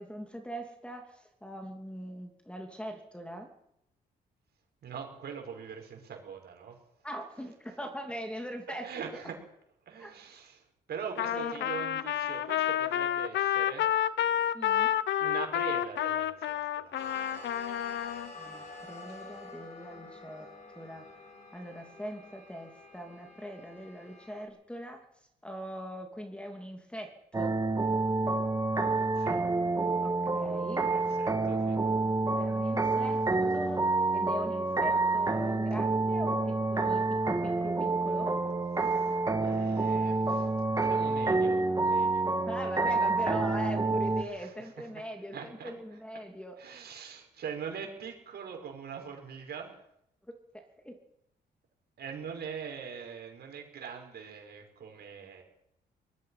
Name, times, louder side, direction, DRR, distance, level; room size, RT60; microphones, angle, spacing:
voice 1, 0.0-3.5 7.0-8.9 10.0-10.1 11.3-11.7 14.5-14.9 18.4-20.5 20.7-21.1 21.5-25.0 25.4-27.6 30.0-30.9 32.4-33.2 33.5-38.4 42.0-46.6 50.5-51.0, equal, 5° left, 4 dB, 2.9 m, -41 dB
voice 2, 4.8-6.8 8.8-9.3 9.9-10.6 10.9-13.9 15.2-17.0 29.1-29.4 30.8-31.8 38.8-42.3 44.4-45.0 45.3-45.7 46.6-49.8 52.0-55.4, right 7 dB, 60° right, 2 dB, 6.0 m, -42 dB
Trumpet, 11.2-18.3, left 11 dB, 80° left, 0.9 m, -29 dB
sound 1, 16.9-24.4, left 3 dB, 35° left, 7.3 m, -48 dB
sound 2, 27.3-44.2, right 3 dB, 20° right, 1.9 m, -28 dB
23.5 x 20.0 x 5.9 m, 0.77 s
cardioid pair, 125°, 18 cm